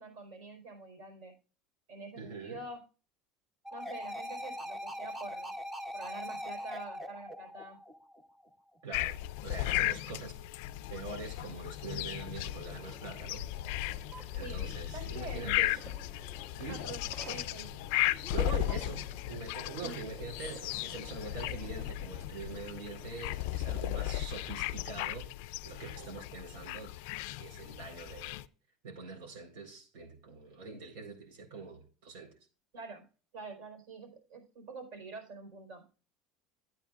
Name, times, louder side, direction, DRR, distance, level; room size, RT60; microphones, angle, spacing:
voice 1, 0.0-1.4 1.9-2.9 3.7-5.5 5.9-7.8 11.9-12.2 14.4-14.6 14.9-15.6 16.7-17.7 18.3-18.4 18.8-18.9 19.8-20.0 32.7-33.0 33.3-35.9, right 3 dB, 70° right, 4.1 m, -46 dB
voice 2, 2.2-2.6 8.8-10.4 10.9-13.5 13.9-14.0 14.3-15.8 16.6-16.8 18.3-25.3 25.6-26.9 27.4-28.4 28.8-32.3, right 4 dB, 85° right, 3.9 m, -44 dB
sound 1, 3.6-8.5, equal, 15° right, 0.9 m, -41 dB
sound 2, 8.9-28.5, left 16 dB, 75° left, 0.3 m, -36 dB
sound 3, 12.5-23.1, right 2 dB, 40° right, 2.0 m, -53 dB
12.0 x 8.9 x 2.4 m
cardioid pair, 160°, 0 cm